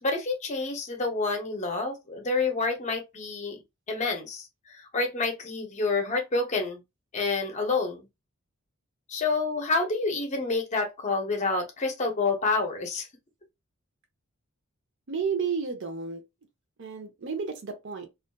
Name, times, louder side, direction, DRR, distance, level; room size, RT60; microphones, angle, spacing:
voice 1, 0.0-3.6 3.9-6.8 7.1-8.1 9.1-13.1, left 3 dB, 35° left, 0.6 m, -28 dB
voice 2, 15.1-16.2 16.8-18.1, right 5 dB, 55° right, 0.6 m, -31 dB
2.5 x 2.4 x 2.2 m
head